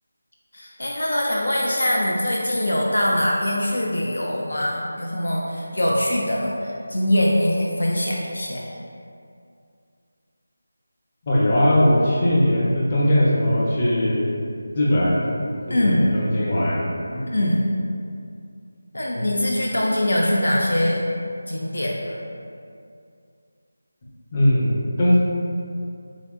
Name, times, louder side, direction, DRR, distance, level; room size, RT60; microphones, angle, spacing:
voice 1, 0.5-8.7 15.7-16.2 17.3-17.8 18.9-21.0 21.5-22.2, left 1 dB, 70° left, -3 dB, 0.4 m, -22 dB
voice 2, 11.3-14.3 14.7-15.3 15.7-17.2 24.3-25.2, left 1 dB, 30° left, -6 dB, 0.6 m, -20 dB
3.4 x 2.6 x 2.4 m, 2.4 s
figure-of-eight pair, 165°, 0 cm